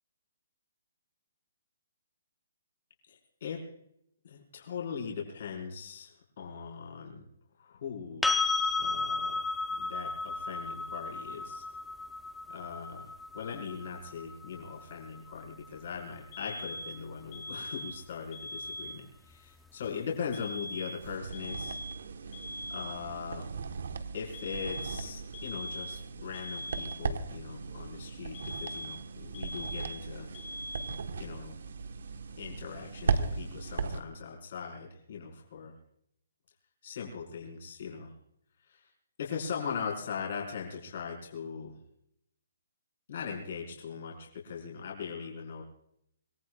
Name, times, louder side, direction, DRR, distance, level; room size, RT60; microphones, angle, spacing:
voice 1, 3.1-3.6 4.2-7.3 7.6-8.2 8.8-9.4 9.7-11.7 12.5-21.8 22.7-23.4 24.1-30.3 31.2-31.5 32.4-35.7 36.8-38.1 38.6-38.9 39.2-41.8 43.1-45.6, left 6 dB, 45° left, -2 dB, 5.0 m, -40 dB
sound 1, 8.2-16.0 18.9-19.0, left 3 dB, ahead, 0.7 m, -34 dB
sound 2, 16.3-17.0 17.3-18.0 18.3-19.0 20.3-21.0 21.3-22.0 22.3-23.0 24.3-25.0 25.3-26.0 26.3-27.0 28.3-29.0 29.3-30.0 30.3-31.0, equal, 25° left, 3.6 m, -41 dB
sound 3, 21.0-34.0, right 5 dB, 65° right, 1.4 m, -37 dB
26.0 x 19.5 x 2.5 m, 0.75 s
hypercardioid pair, 175°, 0 cm